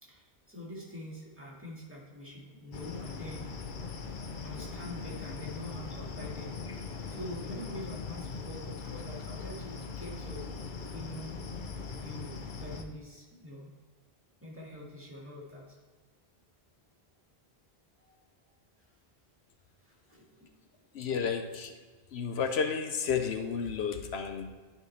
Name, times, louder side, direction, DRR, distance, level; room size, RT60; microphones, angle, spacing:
voice 1, 0.0-3.4 4.4-6.5 7.1-10.5 10.8-11.4 11.9-13.7 14.4-15.8 18.0-18.2 19.9-20.3, left 1 dB, 10° right, -4 dB, 1.9 m, -45 dB
sound 1, 2.7-12.8, left 4 dB, 55° left, 0.8 m, -40 dB
voice 2, 20.9-21.7 22.1-24.5, left 6 dB, 85° left, 6 dB, 1.0 m, -32 dB
11.5 x 4.9 x 3.2 m, 1.4 s
omnidirectional pair, 1.1 m